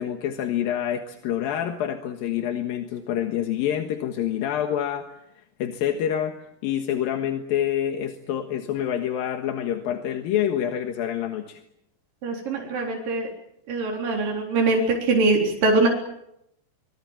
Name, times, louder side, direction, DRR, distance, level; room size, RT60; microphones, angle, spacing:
voice 1, 0.0-5.0 5.6-6.3 6.6-11.6, left 10 dB, 80° left, 5 dB, 3.2 m, -27 dB
voice 2, 12.2-13.3 13.7-15.9, right 3 dB, 70° right, 0 dB, 5.6 m, -22 dB
24.0 x 22.0 x 9.0 m, 0.79 s
omnidirectional pair, 4.1 m